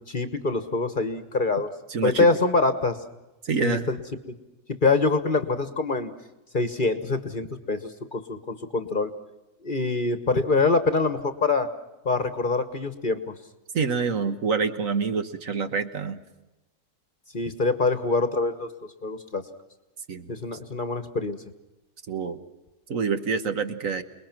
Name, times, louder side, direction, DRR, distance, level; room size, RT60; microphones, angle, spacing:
voice 1, 0.0-1.7 2.0-3.0 3.6-4.0 4.8-6.1 6.5-9.1 9.6-11.7 12.0-13.2 17.3-18.7 19.0-19.4 20.3-21.4, left 3 dB, 35° left, 10 dB, 1.3 m, -24 dB
voice 2, 1.9-2.3 3.4-3.9 13.7-16.2 20.1-20.3 22.1-22.4 22.9-24.0, right 5 dB, 60° right, 8 dB, 1.6 m, -26 dB
28.0 x 20.5 x 6.1 m, 1.0 s
omnidirectional pair, 1.6 m